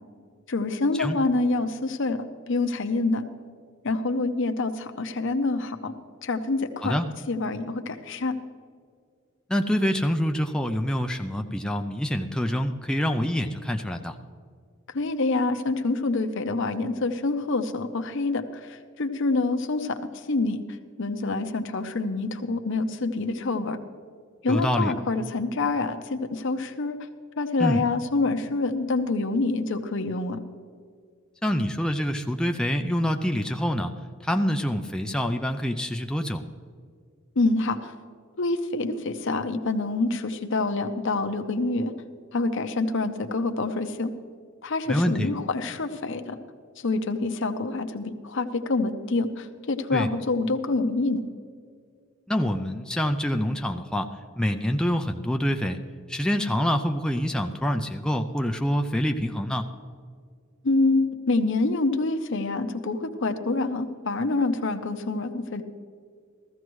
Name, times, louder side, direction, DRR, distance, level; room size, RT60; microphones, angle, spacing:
voice 1, 0.5-3.2 3.8-5.9 6.2-6.9 7.3-8.4 14.9-20.6 21.0-23.8 24.4-27.0 27.4-30.4 37.4-37.9 38.4-41.9 42.3-44.1 44.6-46.4 46.8-51.2 60.6-65.6, left 3 dB, 65° left, 7 dB, 0.8 m, -26 dB
voice 2, 9.5-14.2 24.5-24.9 27.6-27.8 31.4-33.9 34.2-36.4 44.9-45.3 49.9-50.1 52.3-55.8 56.1-59.7, equal, 5° left, 4 dB, 0.4 m, -26 dB
15.0 x 14.5 x 3.1 m, 2.1 s
head